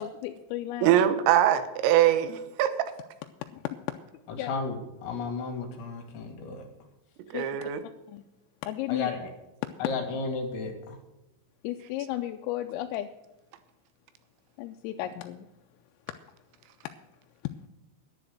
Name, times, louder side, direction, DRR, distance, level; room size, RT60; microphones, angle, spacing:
voice 1, 0.0-1.0 4.3-4.5 7.3-7.7 8.1-8.2 8.6-9.1 11.6-13.1 14.6-15.5, left 13 dB, 90° left, 5 dB, 3.3 m, -34 dB
voice 2, 0.8-2.7 7.3-7.8, right 11 dB, 90° right, 11 dB, 3.7 m, -22 dB
voice 3, 4.3-6.6 8.9-9.3 9.8-11.0 15.0-15.1, left 4 dB, 70° left, 4 dB, 3.9 m, -33 dB
10.5 x 10.0 x 6.6 m, 1.0 s
omnidirectional pair, 5.8 m